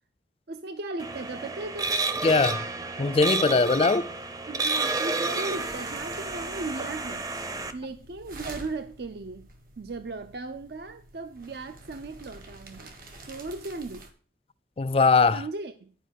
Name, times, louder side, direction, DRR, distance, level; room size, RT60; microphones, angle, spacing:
voice 1, 0.5-2.0 4.5-7.3 7.7-9.5 9.8-12.9 13.2-14.1 15.3-15.9, right 3 dB, 70° right, 0.5 m, -37 dB
sound 1, 1.0-7.7, right 3 dB, 20° right, 0.6 m, -30 dB
voice 2, 2.2-2.7 3.0-4.1 14.8-15.4, left 4 dB, 30° left, 0.4 m, -21 dB
sound 2, 5.5-14.1, right 2 dB, 55° right, 1.6 m, -48 dB
11.0 x 5.0 x 6.3 m
head